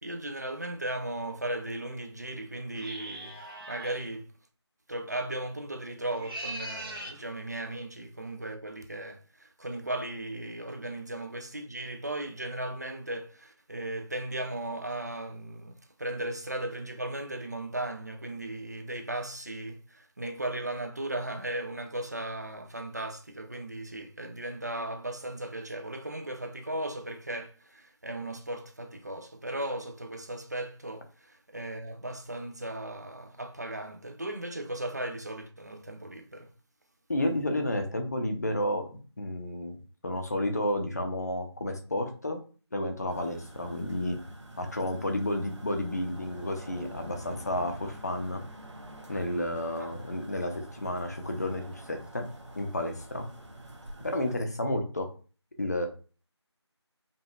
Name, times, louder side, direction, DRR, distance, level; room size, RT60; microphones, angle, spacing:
voice 1, 0.0-3.4 3.7-4.3 4.9-36.5 49.8-49.9, right 1 dB, 35° right, 0.5 m, -36 dB
sound 1, 2.7-4.0 6.1-7.2, right 1 dB, 55° right, 1.4 m, -40 dB
voice 2, 37.1-38.9 39.2-39.8 40.0-42.4 42.7-44.2 44.6-48.4 49.1-52.3 52.5-53.3 54.0-55.1 55.6-55.9, left 1 dB, 35° left, 0.6 m, -31 dB
sound 2, 43.1-54.4, right 1 dB, 80° right, 1.0 m, -47 dB
5.1 x 2.4 x 2.4 m
figure-of-eight pair, 170°, 15 cm